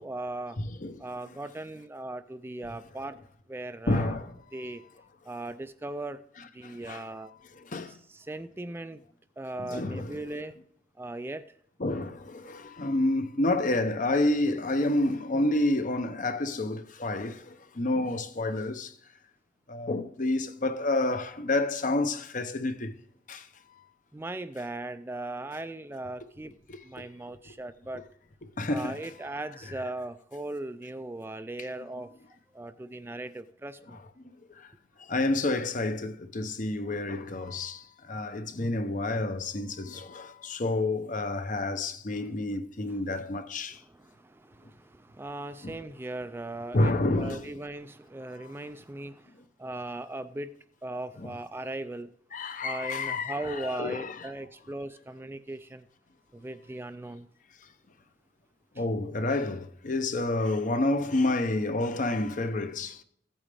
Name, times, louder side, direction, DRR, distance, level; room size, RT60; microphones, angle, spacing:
voice 1, 0.0-0.6 1.0-3.2 3.5-4.2 4.5-4.8 5.2-6.2 6.5-7.3 7.9-9.0 9.4-10.6 11.0-11.5 24.1-26.5 26.8-28.0 28.7-32.1 32.5-34.0 42.1-42.3 43.7-49.3 49.6-50.5 50.8-52.1 52.6-55.9 56.3-57.3, right 2 dB, 15° right, 0.4 m, -38 dB
voice 2, 0.6-1.0 3.9-4.3 6.6-7.0 7.6-8.0 9.6-10.2 11.8-18.9 19.7-22.9 23.3-23.5 26.7-26.8 27.5-27.6 28.4-29.0 34.2-34.7 35.1-43.8 45.6-45.7 46.7-47.5 51.2-51.3 52.3-54.2 58.8-63.0, left 2 dB, 45° left, 0.8 m, -29 dB
15.5 x 8.7 x 3.4 m
head